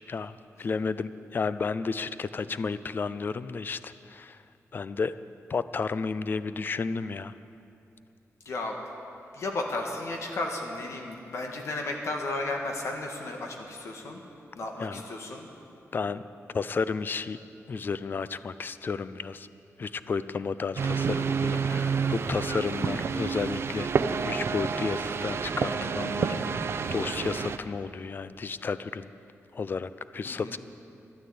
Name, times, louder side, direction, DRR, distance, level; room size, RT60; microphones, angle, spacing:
voice 1, 0.1-4.4 4.7-5.1 5.5-7.3 14.8-15.0 15.9-16.2 16.5-17.4 17.7-19.5 19.8-26.6 26.9-29.1 29.5-30.6, left 4 dB, 40° left, 14 dB, 0.4 m, -32 dB
voice 2, 8.4-8.8 9.3-14.2 14.5-15.5 30.2-30.6, left 2 dB, 60° left, 2 dB, 1.6 m, -34 dB
sound 1, 20.8-27.6, right 5 dB, 50° right, 0.6 m, -29 dB
13.0 x 11.5 x 8.5 m, 2.7 s
wide cardioid pair, 170°, 5 cm